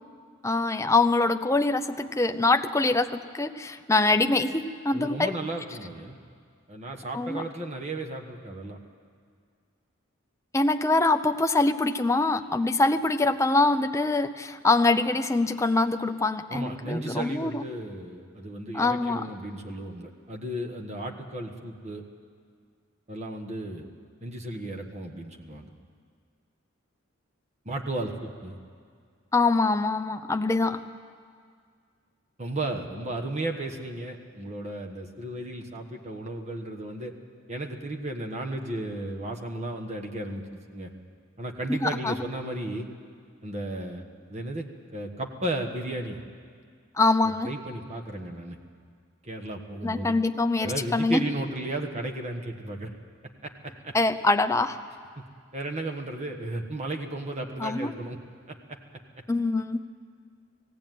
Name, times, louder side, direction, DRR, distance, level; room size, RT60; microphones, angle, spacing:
voice 1, 0.4-5.3 7.1-7.4 10.5-17.6 18.7-19.3 29.3-30.8 41.7-42.2 47.0-47.5 49.8-51.3 53.9-54.8 57.6-57.9 59.3-59.8, left 3 dB, 15° left, 7 dB, 0.6 m, -24 dB
voice 2, 4.9-6.2 6.7-8.8 16.5-22.0 23.1-23.9 24.2-25.7 27.6-28.6 32.4-37.1 37.5-40.9 41.4-42.9 43.4-44.0 44.3-44.7 44.9-46.2 47.2-48.6 49.2-50.2 50.6-52.9 53.4-53.9 55.5-58.2, right 1 dB, 35° right, 2 dB, 1.3 m, -34 dB
18.5 x 16.0 x 9.2 m, 2.1 s
head